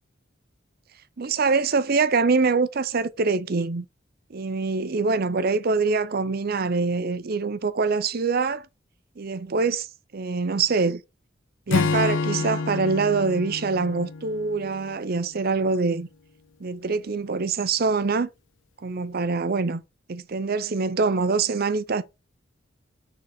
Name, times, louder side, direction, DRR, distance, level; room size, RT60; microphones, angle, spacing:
voice 1, 1.2-3.8 4.3-8.7 9.2-11.0 11.7-16.1 16.6-18.3 18.8-19.8 20.1-22.0, right 4 dB, 50° right, 0.6 m, -24 dB
Acoustic guitar / Strum, 11.7-15.2, left 4 dB, 75° left, 0.5 m, -28 dB
6.5 x 4.0 x 4.8 m
head